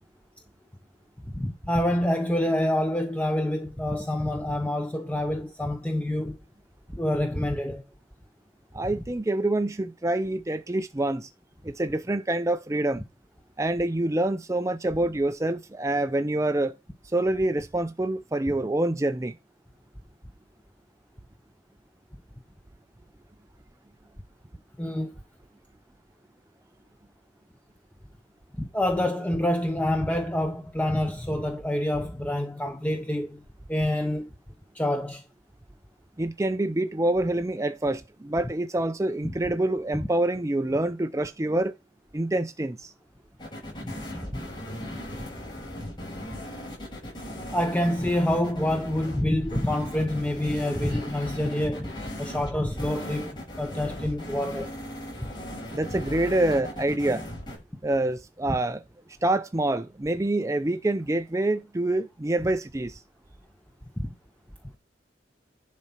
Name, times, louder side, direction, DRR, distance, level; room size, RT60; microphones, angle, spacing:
voice 1, 1.3-6.4 6.9-7.8 24.8-25.1 28.6-33.4 33.7-34.3 34.7-35.2 39.2-39.3 43.8-44.4 45.2-45.3 47.5-54.8 55.2-55.3 64.0-64.1, left 1 dB, 10° left, 0.8 m, -27 dB
voice 2, 8.7-11.3 11.6-13.0 13.6-16.8 17.1-19.4 36.2-41.7 42.1-42.9 55.7-57.3 57.8-58.8 59.2-63.0, right 1 dB, 15° right, 0.5 m, -26 dB
sound 1, 43.4-57.6, left 1 dB, 25° left, 6.9 m, -37 dB
10.5 x 4.2 x 5.6 m
head